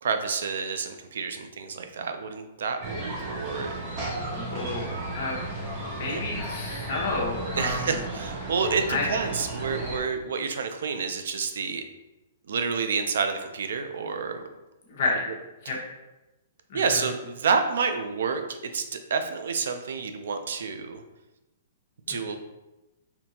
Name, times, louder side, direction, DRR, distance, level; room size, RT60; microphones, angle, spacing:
voice 1, 0.0-3.7 6.1-6.2 7.5-11.8 12.5-14.4 15.6-15.7 16.7-18.4 18.7-21.0 22.1-22.4, right 5 dB, 65° right, 7 dB, 0.4 m, -29 dB
sound 1, 2.8-10.0, right 2 dB, 25° right, 0.7 m, -34 dB
voice 2, 4.1-5.4 5.9-7.9 8.9-9.1 15.0-15.2 15.7-15.8 16.7-17.0 22.1-22.4, left 3 dB, 40° left, -2 dB, 0.9 m, -31 dB
4.3 x 2.8 x 2.7 m, 1.0 s
hypercardioid pair, 175°, 0 cm